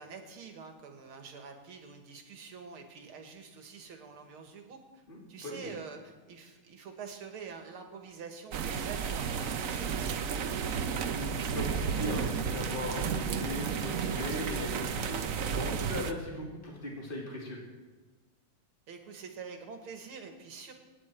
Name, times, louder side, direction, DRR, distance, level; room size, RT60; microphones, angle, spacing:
voice 1, 0.0-10.3 18.9-20.7, right 5 dB, 80° right, 5 dB, 2.7 m, -46 dB
voice 2, 5.1-5.6 11.1-17.6, left 1 dB, 25° left, -2 dB, 3.2 m, -38 dB
sound 1, 8.5-16.1, right 6 dB, 55° right, 0.9 m, -32 dB
25.0 x 10.0 x 4.6 m, 1.3 s
omnidirectional pair, 2.3 m